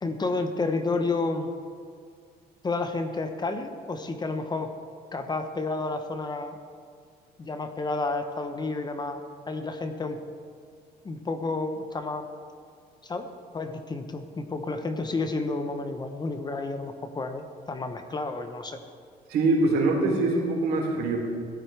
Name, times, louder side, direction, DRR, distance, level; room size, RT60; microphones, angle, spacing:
voice 1, 0.0-1.5 2.6-4.7 5.1-6.6 7.4-9.2 9.5-10.2 11.0-12.3 13.0-13.3 13.5-18.8, left 3 dB, 25° left, 7 dB, 0.9 m, -30 dB
voice 2, 19.3-21.2, right 2 dB, 70° right, -1 dB, 3.2 m, -23 dB
16.5 x 12.5 x 3.4 m, 2.2 s
cardioid pair, 110°, 17 cm